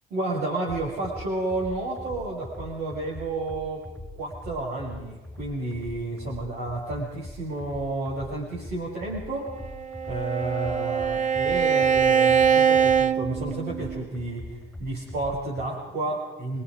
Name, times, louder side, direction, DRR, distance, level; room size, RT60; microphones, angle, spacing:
voice 1, 0.1-3.9 4.2-9.6 10.1-16.6, right 2 dB, 70° right, -5 dB, 6.3 m, -31 dB
sound 1, 0.7-15.7, left 2 dB, 5° left, 5.0 m, -42 dB
Bowed string instrument, 9.6-14.1, right 7 dB, 45° right, 1.0 m, -23 dB
26.5 x 21.5 x 5.1 m, 1.1 s
cardioid pair, 110°, 17 cm